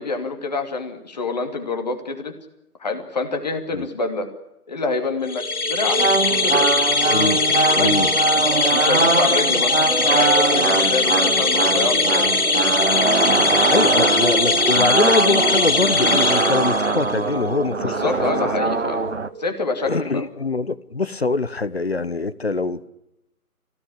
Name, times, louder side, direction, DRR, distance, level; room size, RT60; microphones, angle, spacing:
voice 1, 0.0-2.3 2.8-4.3 4.7-6.0 6.3-6.7 7.8-8.1 8.7-9.8 10.1-12.3 17.8-19.0 19.4-20.3, left 3 dB, 30° left, 5 dB, 2.7 m, -26 dB
sound 1, 5.3-17.1, left 4 dB, 70° left, 1.5 m, -21 dB
sound 2, 5.4-19.5, right 2 dB, 30° right, 3.4 m, -35 dB
sound 3, 6.0-19.3, right 3 dB, 50° right, 1.1 m, -22 dB
voice 2, 7.1-7.4 7.7-8.1 13.4-18.3 19.8-22.9, left 3 dB, 45° left, 16 dB, 1.1 m, -24 dB
25.5 x 17.0 x 10.0 m, 0.90 s
figure-of-eight pair, 155°, 45 cm